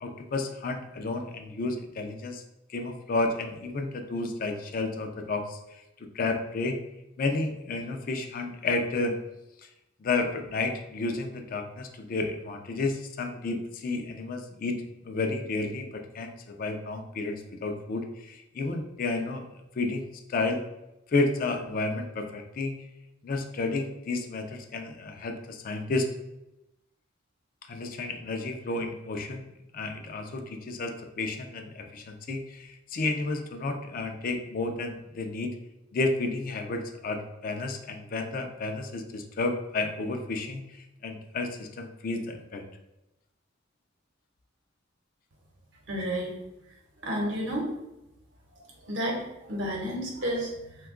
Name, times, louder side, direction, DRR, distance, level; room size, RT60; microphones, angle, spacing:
voice 1, 0.0-2.4 2.7-5.6 6.0-6.8 7.2-9.2 10.0-14.8 15.0-19.4 19.8-20.6 21.1-22.8 23.2-26.1 27.7-29.4 29.7-35.5 35.9-40.6 41.0-42.6, left 3 dB, 45° left, 5 dB, 0.4 m, -31 dB
voice 2, 45.9-46.3 47.0-47.7 48.8-50.9, equal, 65° right, -1 dB, 0.9 m, -31 dB
2.8 x 2.2 x 3.6 m, 0.93 s
head